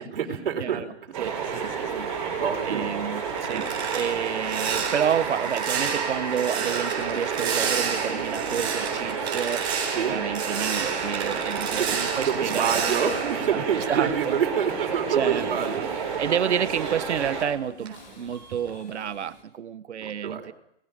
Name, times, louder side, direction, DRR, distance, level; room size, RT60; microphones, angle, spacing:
voice 1, 0.0-0.8 2.4-2.9 3.5-3.7 9.9-10.3 11.8-15.9 20.0-20.4, right 7 dB, 55° right, 4 dB, 4.2 m, -27 dB
voice 2, 0.6-2.1 2.7-3.7 3.9-9.6 10.1-14.4 15.1-15.8 16.2-20.5, right 8 dB, 80° right, 14 dB, 1.3 m, -30 dB
sound 1, 1.1-17.5, right 6 dB, 30° right, 7.4 m, -31 dB
Subway metro underground, 1.4-19.4, left 3 dB, 40° left, 3.9 m, -48 dB
sound 2, 3.0-14.5 14.8-17.5 17.8-18.1 18.5-18.8, right 6 dB, 15° right, 4.0 m, -32 dB
28.0 x 20.0 x 5.2 m, 0.73 s
hypercardioid pair, 180°, 34 cm